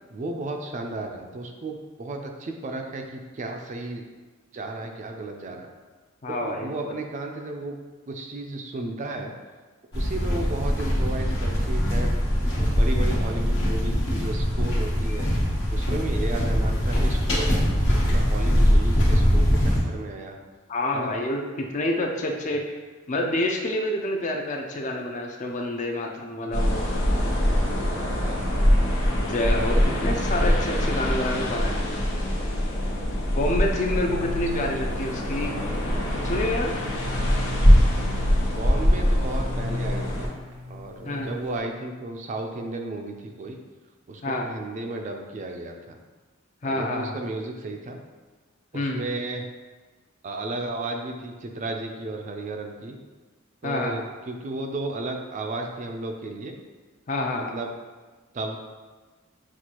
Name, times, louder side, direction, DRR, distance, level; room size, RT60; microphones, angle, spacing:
voice 1, 0.1-4.1 4.5-5.7 6.4-7.8 8.1-9.3 9.9-12.1 12.6-15.3 15.7-17.6 17.9-20.4 20.9-21.1 27.9-28.4 34.5-34.6 38.4-40.3 40.7-43.6 44.1-46.0 46.6-48.0 48.7-49.5 50.2-53.0 53.6-56.6 57.4-57.7 58.3-58.6, right 2 dB, 35° right, 3 dB, 0.3 m, -34 dB
voice 2, 6.2-6.9 20.7-22.8 23.1-26.9 29.2-31.8 33.3-35.6 36.2-36.7 41.0-41.3 44.2-44.5 46.6-47.2 48.7-49.1 53.6-54.0 57.1-57.6, left 1 dB, 35° left, 2 dB, 0.4 m, -28 dB
sound 1, 9.9-19.8, equal, 60° left, 1.1 m, -22 dB
sound 2, 26.5-40.3, equal, 80° left, 0.9 m, -23 dB
sound 3, 34.1-41.6, left 2 dB, 90° right, 0.7 m, -38 dB
6.0 x 2.4 x 2.9 m, 1.3 s
head